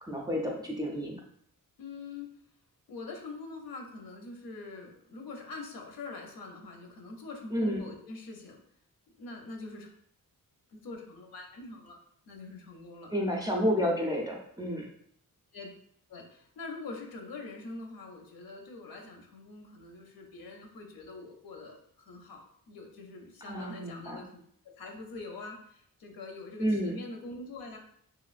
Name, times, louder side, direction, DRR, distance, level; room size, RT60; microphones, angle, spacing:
voice 1, 0.0-1.2 7.5-7.8 13.1-14.8 23.4-24.2 26.6-27.0, equal, 10° right, -2 dB, 0.3 m, -30 dB
voice 2, 1.8-2.3 2.9-8.6 9.2-9.9 10.7-12.0 12.3-13.4 15.5-15.7 16.1-24.4 24.8-27.8, left 3 dB, 80° left, 2 dB, 0.7 m, -44 dB
3.0 x 2.8 x 2.4 m, 0.66 s
wide cardioid pair, 160°, 35 cm